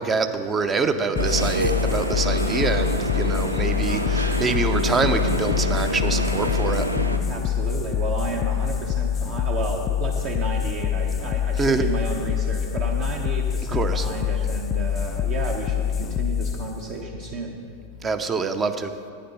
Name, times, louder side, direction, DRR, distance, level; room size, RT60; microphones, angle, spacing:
voice 1, 0.0-6.9 11.6-11.9 13.7-14.1 18.0-18.9, right 4 dB, 20° right, 8 dB, 0.7 m, -25 dB
sound 1, 1.1-7.2, right 1 dB, 85° right, 0.7 m, -26 dB
sound 2, 1.2-18.2, left 9 dB, 25° left, 0.3 m, -26 dB
voice 2, 7.3-17.6, right 3 dB, 45° right, 1 dB, 1.1 m, -32 dB
10.0 x 9.4 x 5.5 m, 2.3 s
figure-of-eight pair, 90°, 0 cm